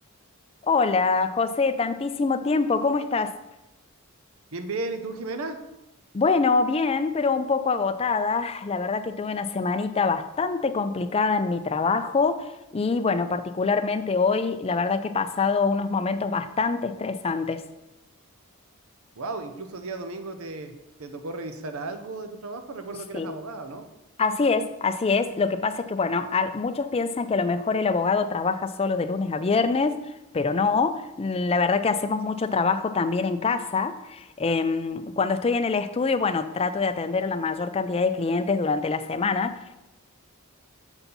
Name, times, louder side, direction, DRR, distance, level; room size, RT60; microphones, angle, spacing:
voice 1, 0.6-3.4 6.1-17.7 23.1-23.3 24.2-30.0 30.3-39.8, left 4 dB, 25° left, 10 dB, 0.3 m, -25 dB
voice 2, 4.5-5.6 19.2-20.7 21.0-23.9, right 3 dB, 70° right, 8 dB, 0.7 m, -34 dB
7.0 x 4.3 x 5.3 m, 0.93 s
head